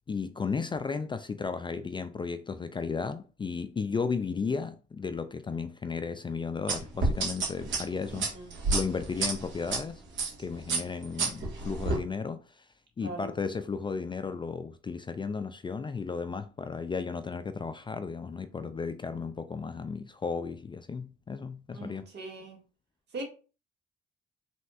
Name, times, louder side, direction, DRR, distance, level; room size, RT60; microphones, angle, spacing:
voice 1, 0.1-8.3 8.7-10.0 10.4-12.7 13.0-22.0, left 5 dB, 25° left, 0.3 m, -34 dB
sound 1, 6.7-9.8 10.2-10.4 10.7-12.0, right 3 dB, 75° right, 1.8 m, -29 dB
voice 2, 8.1-8.5 13.0-13.3 21.7-22.6 23.1-23.2, right 2 dB, 55° right, 1.9 m, -40 dB
5.3 x 3.4 x 2.5 m
cardioid pair, 90°, 20 cm